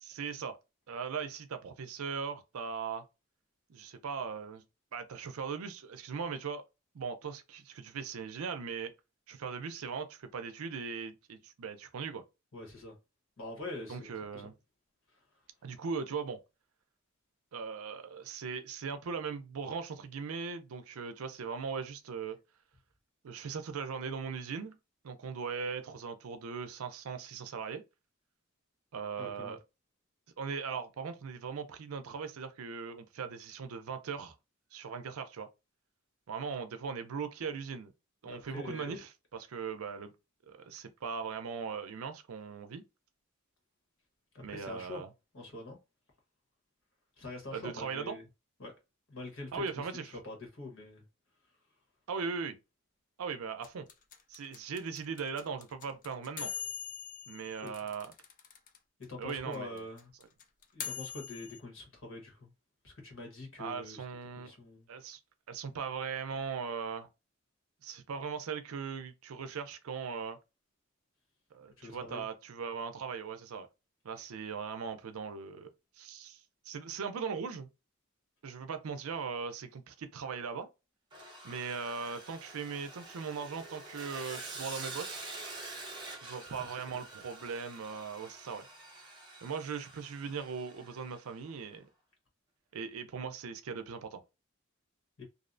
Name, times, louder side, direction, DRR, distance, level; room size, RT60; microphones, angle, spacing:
voice 1, 0.0-0.6 0.9-3.0 3.7-4.6 4.9-6.6 6.9-8.9 9.3-12.2 13.9-14.5 15.6-16.4 17.5-22.4 23.2-24.8 25.0-27.8 28.9-29.6 30.4-34.4 34.7-35.5 36.3-37.9 38.2-40.1 40.5-42.8 44.4-45.1 47.5-48.2 49.5-50.1 52.1-52.6 53.2-53.9 54.3-56.5 57.3-58.1 59.2-59.8 63.6-64.5 64.9-65.2 65.5-67.1 67.8-70.4 71.5-73.7 74.0-75.7 76.0-76.4 76.7-77.7 78.4-80.7 81.4-85.3 86.2-88.7 89.4-91.9 92.7-94.2, right 5 dB, 85° right, 0.5 m, -39 dB
voice 2, 12.5-13.0 13.4-14.5 15.1-15.2 29.2-29.6 38.2-39.0 44.3-45.0 45.3-45.8 47.2-48.3 48.6-48.7 49.1-49.9 50.2-51.0 57.6-57.7 59.1-60.1 60.7-62.5 62.8-64.0 64.4-64.9 71.8-72.2 86.4-87.0 95.2-95.3, left 2 dB, 65° left, 1.1 m, -45 dB
sound 1, 53.6-58.8 59.0-59.1 59.3-61.6, left 9 dB, 40° left, 0.4 m, -42 dB
Sawing, 81.1-91.4, right 2 dB, 20° right, 0.8 m, -47 dB
2.6 x 2.1 x 2.5 m
head